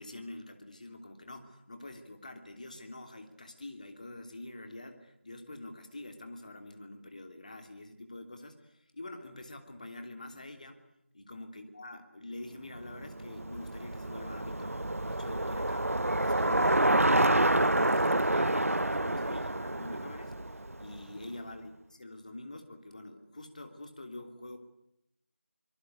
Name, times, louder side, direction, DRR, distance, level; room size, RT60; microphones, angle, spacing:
voice 1, 0.0-10.8 11.1-24.6, left 2 dB, 35° left, 6 dB, 3.0 m, -46 dB
Bicycle, 12.9-21.2, right 1 dB, 85° right, 1.0 m, -28 dB
25.0 x 23.0 x 8.2 m, 0.79 s
figure-of-eight pair, 175°, 8 cm